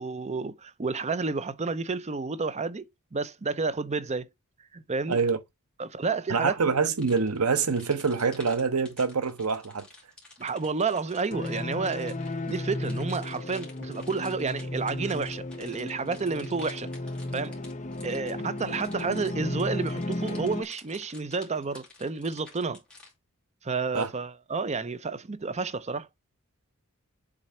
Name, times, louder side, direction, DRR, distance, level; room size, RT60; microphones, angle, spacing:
voice 1, 0.0-4.3 4.7-5.2 5.8-6.7 10.4-12.2 12.5-16.9 17.3-17.6 18.0-22.8 23.6-26.1, right 4 dB, 30° right, 0.6 m, -30 dB
voice 2, 5.1-5.4 6.3-9.9 23.9-24.1, right 5 dB, 85° right, 1.0 m, -25 dB
sound 1, 7.0-23.1, left 3 dB, 5° left, 2.5 m, -51 dB
sound 2, 11.3-20.6, left 1 dB, 35° left, 0.7 m, -34 dB
7.4 x 3.9 x 4.4 m
head